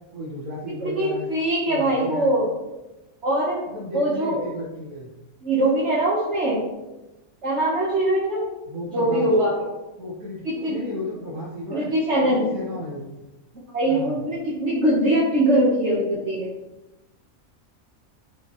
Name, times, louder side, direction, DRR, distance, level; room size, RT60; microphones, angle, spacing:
voice 1, 0.1-1.3 1.7-2.3 3.7-5.1 8.7-9.3 10.0-10.4 10.7-11.9 12.2-13.1 13.9-14.2, left 1 dB, 85° right, -6 dB, 2.0 m, -34 dB
voice 2, 0.7-2.5 3.2-3.7 3.9-4.4 5.4-6.6 7.4-8.5 8.9-9.7 10.5-10.8 11.7-12.5 13.7-16.5, right 1 dB, 50° right, -6 dB, 1.7 m, -22 dB
12.5 x 5.4 x 3.1 m, 1.0 s
omnidirectional pair, 1.5 m